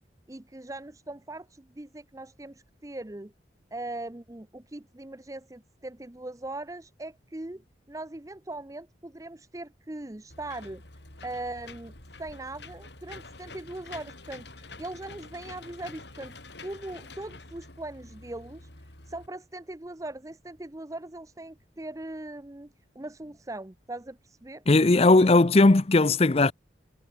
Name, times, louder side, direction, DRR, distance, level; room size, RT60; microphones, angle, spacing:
voice 1, 0.3-3.3 3.7-10.8 11.2-11.9 12.2-16.3 16.6-18.7 19.1-24.6, right 2 dB, 20° right, 0.7 m, -40 dB
Engine / Mechanisms, 10.3-19.3, left 3 dB, 70° left, 5.5 m, -47 dB
voice 2, 24.7-26.5, left 2 dB, 35° left, 0.6 m, -18 dB
head